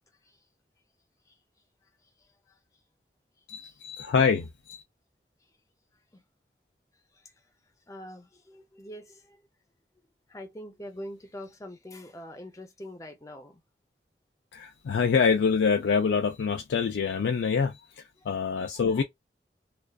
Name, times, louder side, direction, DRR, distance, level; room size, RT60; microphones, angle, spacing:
voice 1, 1.8-2.6 3.6-3.8 5.4-5.5 6.1-6.2 7.1-7.5 7.9-9.4 10.3-13.6 18.2-18.3 19.0-19.1, left 1 dB, 20° left, 0.6 m, -45 dB
voice 2, 3.5-4.8 14.5-19.0, left 5 dB, 90° left, 0.4 m, -26 dB
2.3 x 2.3 x 2.3 m
head